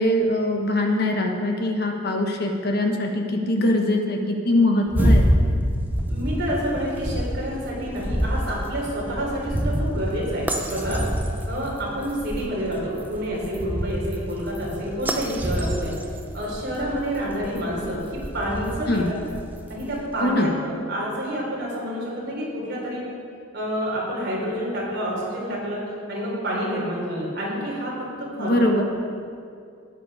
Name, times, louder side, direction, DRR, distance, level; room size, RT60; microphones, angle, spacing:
voice 1, 0.0-5.3 18.9-19.1 20.2-20.5 28.4-28.8, left 1 dB, 50° left, 2 dB, 1.3 m, -22 dB
sound 1, 4.9-20.0, equal, 10° right, 0.7 m, -27 dB
voice 2, 6.1-15.9 16.3-18.0 18.3-19.2 19.7-23.0 23.5-28.8, equal, 50° right, -4 dB, 3.5 m, -28 dB
13.0 x 9.3 x 4.9 m, 2.4 s
head